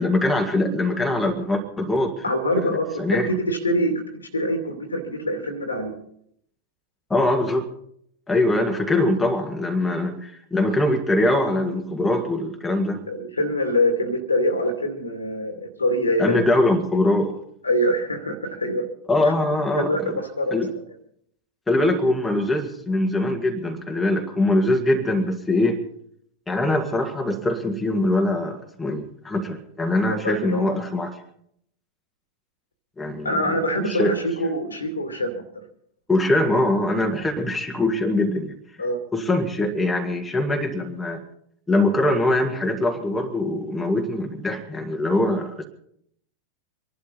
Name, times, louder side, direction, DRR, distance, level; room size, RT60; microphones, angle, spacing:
voice 1, 0.0-2.2 2.6-3.3 7.1-7.7 8.3-13.0 16.2-17.3 19.1-20.2 20.5-20.7 21.7-25.8 26.5-31.2 33.0-34.1 36.1-38.6 39.1-41.2 41.7-45.6, left 1 dB, 10° left, 2.0 m, -22 dB
voice 2, 2.2-2.9 3.1-5.9 13.1-16.4 17.6-18.8 19.2-19.3 19.8-20.6 30.1-30.7 33.2-35.4 38.8-39.0, equal, 80° left, 2.5 m, -24 dB
25.5 x 11.5 x 4.1 m
figure-of-eight pair, 90°, 0 cm